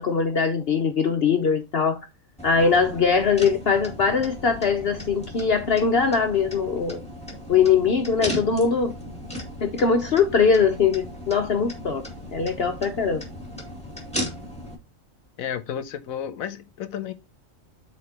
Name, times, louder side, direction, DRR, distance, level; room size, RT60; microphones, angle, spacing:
voice 1, 0.0-2.0 2.4-7.0 7.5-8.9 9.6-12.0 12.3-13.2, left 5 dB, 55° left, 0.9 m, -21 dB
sound 1, 2.4-14.7, left 1 dB, 5° left, 2.2 m, -36 dB
voice 2, 15.4-17.1, left 9 dB, 90° left, 1.2 m, -32 dB
9.5 x 4.3 x 2.9 m
omnidirectional pair, 1.4 m